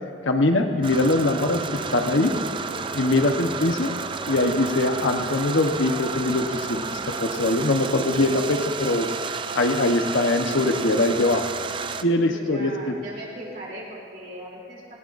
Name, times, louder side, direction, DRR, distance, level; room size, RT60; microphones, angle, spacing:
voice 1, 0.2-2.3 2.9-3.9 4.3-11.4 12.0-12.9, left 2 dB, 85° left, 4 dB, 1.0 m, -22 dB
sound 1, 0.8-12.0, right 5 dB, 25° right, 0.4 m, -32 dB
sound 2, 1.1-8.8, equal, 20° left, 3.7 m, -42 dB
voice 2, 12.2-14.9, right 1 dB, 50° right, -5 dB, 3.1 m, -39 dB
19.0 x 18.5 x 2.6 m, 2.7 s
head